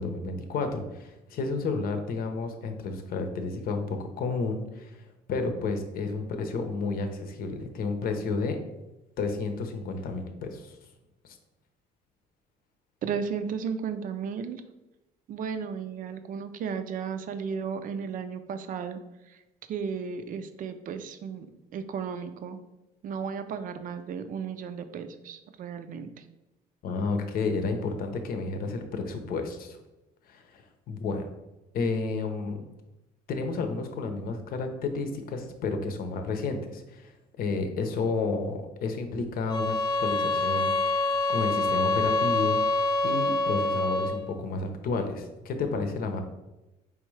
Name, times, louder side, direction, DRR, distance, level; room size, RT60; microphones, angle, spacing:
voice 1, 0.0-5.0 5.3-8.6 9.2-10.7 11.2-11.4 26.8-29.8 30.3-30.6 30.9-31.3 31.7-32.6 33.3-37.1 37.4-42.6 43.0-46.2, left 4 dB, 60° left, 6 dB, 0.8 m, -31 dB
voice 2, 13.0-14.6 15.3-19.0 19.3-19.4 19.7-21.5 21.7-22.6 23.0-26.1, right 6 dB, 55° right, 9 dB, 0.5 m, -34 dB
sound 1, 39.5-44.2, left 2 dB, 25° left, 0.6 m, -26 dB
4.7 x 3.5 x 3.2 m, 0.99 s
cardioid pair, 110°, 17 cm